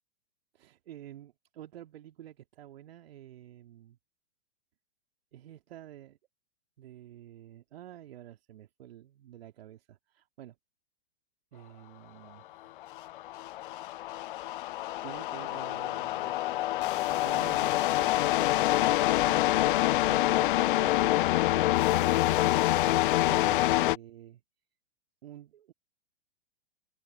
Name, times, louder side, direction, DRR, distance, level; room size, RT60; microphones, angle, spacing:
voice 1, 0.5-4.0 5.3-6.2 6.8-10.6 11.5-12.7 15.0-16.8 17.1-19.5 20.1-22.6 23.3-24.4 25.2-25.7, right 12 dB, 60° right, 2.8 m, -49 dB
sound 1, 12.8-24.0, left 16 dB, 50° left, 0.5 m, -26 dB
open air
figure-of-eight pair, 110°, 34 cm